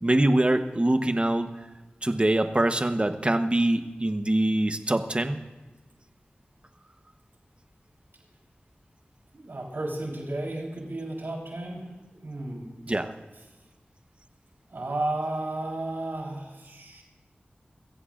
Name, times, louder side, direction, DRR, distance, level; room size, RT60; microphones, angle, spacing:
voice 1, 0.0-1.5 2.0-5.4 12.9-13.1, right 1 dB, 30° right, 8 dB, 1.0 m, -24 dB
voice 2, 9.3-12.7 14.7-17.0, right 2 dB, 80° right, -1 dB, 3.9 m, -33 dB
23.0 x 15.5 x 2.5 m, 1.2 s
wide cardioid pair, 50°, 4 cm